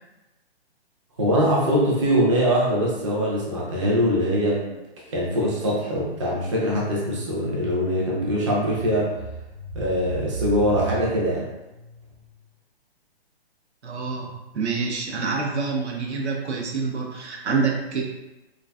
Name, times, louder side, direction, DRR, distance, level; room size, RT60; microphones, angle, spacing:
voice 1, 1.2-4.6 5.1-9.2 9.7-11.5, equal, 30° right, -4 dB, 0.4 m, -22 dB
sound 1, 4.5-12.3, right 3 dB, 55° right, 0.9 m, -38 dB
voice 2, 13.8-18.0, right 4 dB, 85° right, -1 dB, 0.7 m, -27 dB
2.5 x 2.3 x 2.2 m, 1.0 s
hypercardioid pair, 160°, 32 cm